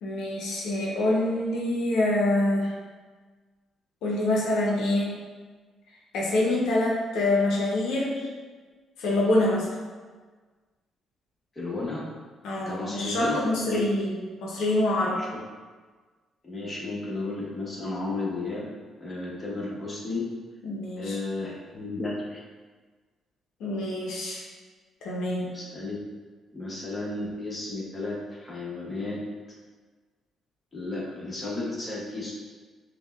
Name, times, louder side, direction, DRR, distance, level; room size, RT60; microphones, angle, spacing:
voice 1, 0.0-2.8 4.0-5.3 6.1-8.3 9.0-9.7 12.4-15.2 20.6-21.2 23.6-24.4 25.0-25.5, left 1 dB, 85° left, -4 dB, 0.6 m, -26 dB
voice 2, 11.5-12.1 12.6-13.8 15.1-15.4 16.4-18.7 19.0-20.2 21.0-22.4 25.4-26.0 26.5-29.2 30.7-32.3, left 2 dB, 25° left, -5 dB, 1.0 m, -33 dB
5.3 x 2.2 x 2.3 m, 1.4 s
cardioid pair, 90°, 0 cm